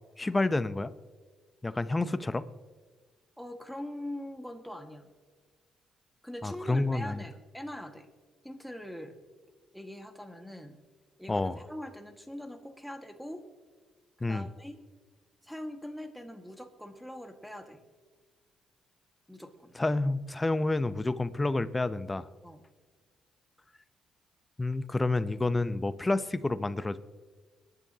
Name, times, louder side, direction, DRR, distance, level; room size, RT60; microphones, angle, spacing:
voice 1, 0.2-0.9 1.6-2.4 6.4-7.2 11.3-11.6 14.2-14.5 19.8-22.3 24.6-27.0, left 2 dB, 20° left, 13 dB, 0.6 m, -29 dB
voice 2, 3.4-5.1 6.2-8.1 8.4-9.2 9.7-10.8 11.2-13.4 14.2-14.8 15.4-17.8 19.3-19.7 22.4-22.6, left 1 dB, ahead, 4 dB, 1.7 m, -42 dB
24.5 x 11.0 x 2.8 m, 1.4 s
cardioid pair, 90°, 0 cm